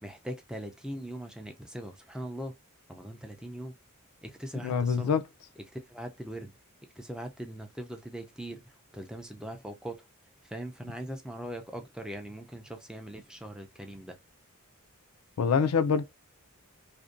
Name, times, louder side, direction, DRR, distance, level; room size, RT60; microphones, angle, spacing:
voice 1, 0.0-2.5 2.9-3.7 4.2-5.1 5.6-6.5 7.0-8.6 8.9-10.0 10.4-14.2, right 1 dB, 5° right, 0.4 m, -40 dB
voice 2, 4.6-5.2 15.4-16.0, left 6 dB, 90° left, 0.4 m, -25 dB
2.5 x 2.1 x 2.4 m
head